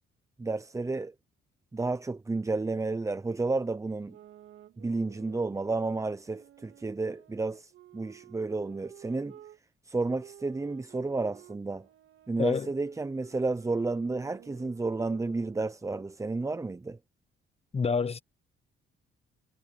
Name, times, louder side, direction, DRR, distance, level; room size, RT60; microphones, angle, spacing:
voice 1, 0.4-1.1 1.7-4.2 4.8-9.4 9.8-11.9 12.3-17.0, right 3 dB, 15° right, 0.7 m, -31 dB
sound 1, 3.9-9.6 10.1-15.7, right 11 dB, 75° right, 3.3 m, -54 dB
voice 2, 17.7-18.2, left 5 dB, 30° left, 1.1 m, -27 dB
cardioid pair, 90°, 20 cm